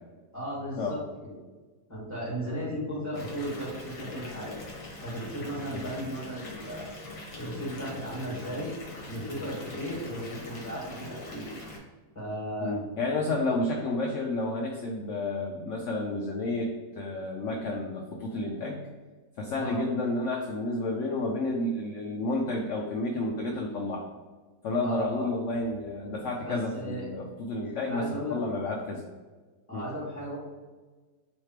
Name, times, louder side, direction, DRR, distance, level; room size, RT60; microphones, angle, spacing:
voice 1, 0.3-1.3 1.9-4.6 5.0-6.9 7.4-8.7 9.1-11.5 12.1-12.7 13.3-13.5 19.5-19.8 24.8-25.3 26.4-27.1 27.9-28.4 28.6-28.8 29.7-30.4, equal, 20° left, -7 dB, 1.3 m, -35 dB
Water tap faucet / Bathtub (filling or washing) / Fill (with liquid), 3.1-11.8, left 2 dB, 60° left, 1.3 m, -43 dB
voice 2, 12.6-18.8 19.4-24.0 24.6-29.0 29.7-29.9, left 2 dB, 90° left, 1 dB, 0.6 m, -31 dB
3.3 x 3.2 x 4.4 m, 1.3 s
omnidirectional pair, 1.9 m